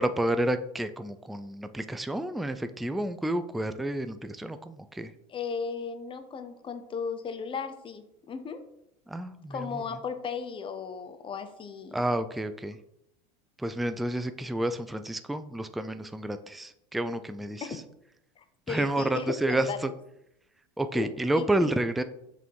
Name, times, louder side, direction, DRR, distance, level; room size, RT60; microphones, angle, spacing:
voice 1, 0.0-5.1 9.1-9.8 11.9-12.8 13.6-17.7 18.7-19.9 20.8-22.0, right 1 dB, ahead, 10 dB, 0.3 m, -30 dB
voice 2, 5.3-8.6 9.5-12.0 17.6-17.8 18.4-19.8 20.9-21.1 21.4-21.7, left 5 dB, 25° left, 9 dB, 0.7 m, -36 dB
6.0 x 3.5 x 4.6 m, 0.81 s
hypercardioid pair, 100°, 19 cm